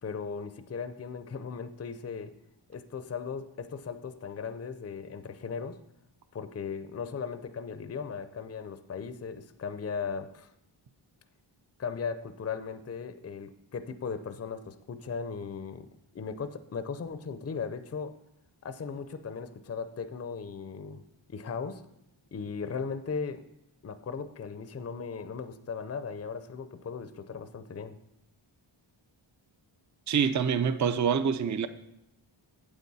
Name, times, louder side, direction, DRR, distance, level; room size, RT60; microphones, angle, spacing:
voice 1, 0.0-2.3 2.7-5.8 6.3-10.5 11.8-18.2 18.6-21.0 21.3-21.8 22.3-23.5 23.8-28.0, left 5 dB, 30° left, 10 dB, 0.5 m, -37 dB
voice 2, 30.1-31.7, right 7 dB, 35° right, 11 dB, 0.5 m, -26 dB
8.4 x 7.9 x 4.1 m, 0.82 s
wide cardioid pair, 90°, 50 cm